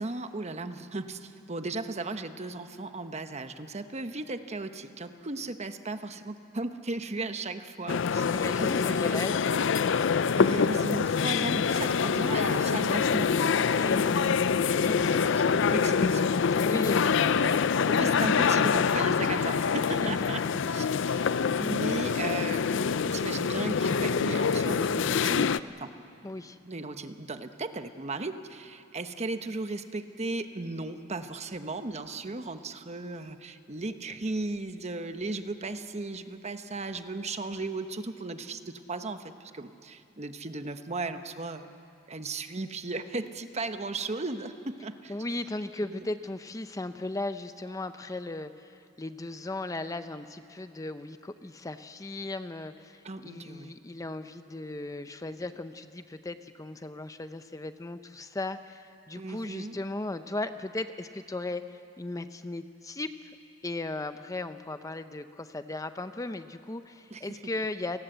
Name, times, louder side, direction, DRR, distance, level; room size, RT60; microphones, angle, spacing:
voice 1, 0.0-8.3 8.6-9.2 10.4-13.3 15.0-16.4 16.7-16.8 17.3-17.6 17.9-25.9 26.6-41.7 42.1-45.1 45.8-46.1 53.0-53.8 59.1-59.8 67.1-67.4, right 2 dB, 35° right, 9 dB, 1.0 m, -36 dB
sound 1, 7.9-25.6, left 6 dB, 65° left, 0.5 m, -25 dB
voice 2, 8.2-9.5 13.8-14.5 14.9-15.2 16.6-17.6 19.9-21.8 26.2-26.6 45.1-63.1 63.6-68.0, left 2 dB, 15° left, 10 dB, 0.6 m, -37 dB
29.0 x 19.0 x 8.0 m, 2.6 s
head